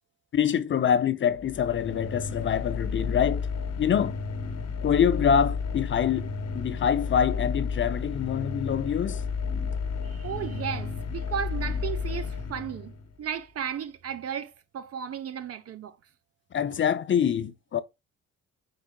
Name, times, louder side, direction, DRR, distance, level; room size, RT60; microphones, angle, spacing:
voice 1, 0.3-3.5 3.8-4.2 4.8-6.3 6.5-9.2 16.5-17.8, left 8 dB, 40° left, 0.5 m, -25 dB
sound 1, 1.3-13.2, left 5 dB, 60° left, 1.1 m, -32 dB
voice 2, 10.0-15.9, right 8 dB, 50° right, 0.7 m, -35 dB
4.8 x 4.6 x 2.2 m
cardioid pair, 90°, 30 cm